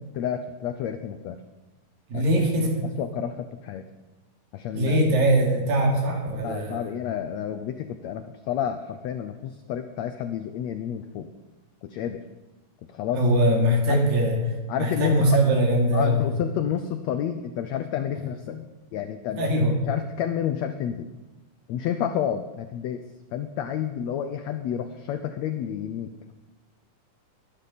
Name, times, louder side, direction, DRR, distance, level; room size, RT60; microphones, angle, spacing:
voice 1, 0.1-1.4 2.1-2.2 3.0-3.9 4.5-5.0 6.4-11.3 11.8-12.2 12.9-13.2 13.9-14.0 14.7-15.4 15.9-19.5 19.9-21.1 21.7-23.0 23.3-26.1, left 9 dB, 85° left, 8 dB, 1.5 m, -30 dB
voice 2, 2.1-2.9 4.7-7.0 13.2-16.2 19.4-19.8, right 1 dB, 80° right, 0 dB, 4.4 m, -22 dB
21.5 x 12.0 x 4.2 m, 1.1 s
omnidirectional pair, 4.0 m